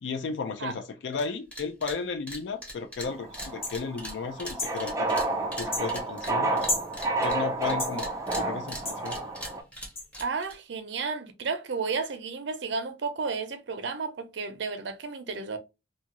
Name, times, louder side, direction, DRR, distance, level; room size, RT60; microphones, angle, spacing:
voice 1, 0.0-5.1 5.6-6.7 7.2-8.1 8.3-9.2, left 5 dB, 85° left, 0.4 m, -34 dB
sound 1, 1.1-1.3 1.5-2.0 2.3-7.7 8.0-10.6, equal, 5° left, 0.9 m, -39 dB
sound 2, 3.1-9.6, right 2 dB, 20° right, 0.5 m, -30 dB
sound 3, 3.6-3.8 4.6-4.8 5.7-5.9 6.7-6.9 7.8-8.0 8.8-9.0 9.9-10.1, left 2 dB, 35° left, 1.7 m, -31 dB
voice 2, 10.2-15.6, right 4 dB, 80° right, 0.6 m, -32 dB
2.7 x 2.4 x 2.9 m
head